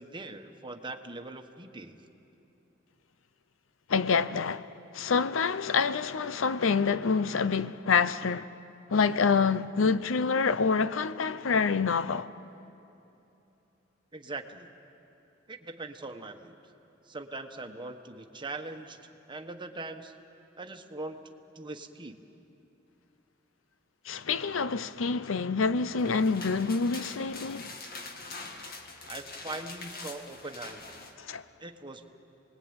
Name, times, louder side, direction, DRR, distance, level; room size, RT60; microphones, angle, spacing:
voice 1, 0.0-2.0 14.1-14.7 15.5-16.5 17.1-19.0 19.3-20.1 20.6-21.2 21.5-22.2 29.1-30.9 31.6-32.1, right 2 dB, 25° right, 1.3 m, -41 dB
voice 2, 3.9-8.5 8.9-12.3 24.1-27.7 31.2-31.4, left 5 dB, 75° left, 0.6 m, -27 dB
sound 1, 25.8-31.1, left 3 dB, 50° left, 2.0 m, -44 dB
29.0 x 20.5 x 8.9 m
head